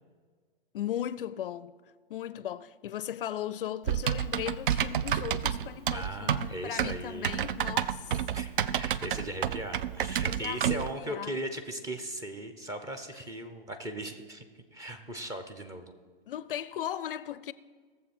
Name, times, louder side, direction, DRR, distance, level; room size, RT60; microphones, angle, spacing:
voice 1, 0.7-1.7 2.1-8.2 10.2-11.3 16.3-17.5, left 11 dB, 60° left, 0.5 m, -37 dB
Typing, 3.9-10.9, right 9 dB, 60° right, 0.5 m, -30 dB
voice 2, 5.9-7.3 8.3-8.5 8.7-14.4 14.7-15.9, right 1 dB, 10° right, 0.6 m, -38 dB
17.5 x 7.3 x 4.3 m
hypercardioid pair, 125°, 30 cm